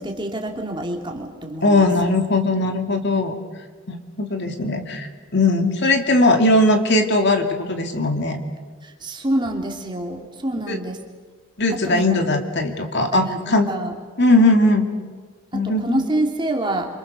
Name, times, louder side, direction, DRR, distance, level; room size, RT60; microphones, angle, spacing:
voice 1, 0.0-1.9 8.8-11.0 11.7-12.1 13.1-13.4 13.7-13.9 15.5-16.9, right 1 dB, 20° right, 2 dB, 2.9 m, -26 dB
voice 2, 1.6-3.4 3.9-8.4 10.7-10.8 11.6-13.7 14.2-14.8 15.5-16.0, left 2 dB, 50° left, 5 dB, 2.6 m, -19 dB
28.0 x 26.0 x 6.9 m, 1.5 s
head